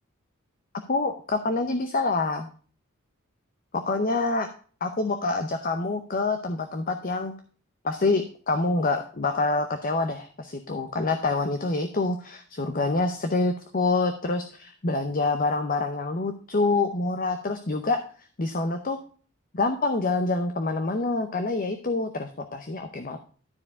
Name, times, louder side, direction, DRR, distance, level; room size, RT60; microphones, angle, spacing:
voice 1, 0.9-2.5 3.7-4.5 4.8-7.3 7.8-18.0 18.4-19.0 19.5-23.2, left 3 dB, 40° left, 7 dB, 0.7 m, -26 dB
12.5 x 4.6 x 4.7 m, 0.42 s
head